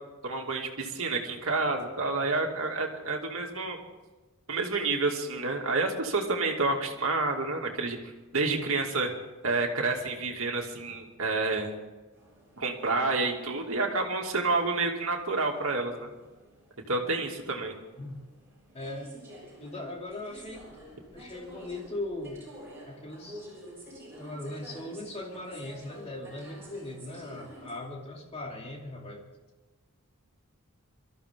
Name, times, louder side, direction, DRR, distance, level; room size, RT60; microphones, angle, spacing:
voice 1, 0.2-3.8 4.5-8.0 8.3-9.1 9.4-11.7 12.6-16.1 16.9-17.7, right 3 dB, 65° right, 1 dB, 2.5 m, -29 dB
sound 1, 12.1-27.7, equal, 10° right, 6.6 m, -50 dB
voice 2, 18.7-19.1 19.6-20.7 21.1-22.5 22.9-23.5 24.2-29.3, left 2 dB, 30° left, -1 dB, 2.8 m, -39 dB
24.0 x 14.0 x 3.7 m, 1.2 s
head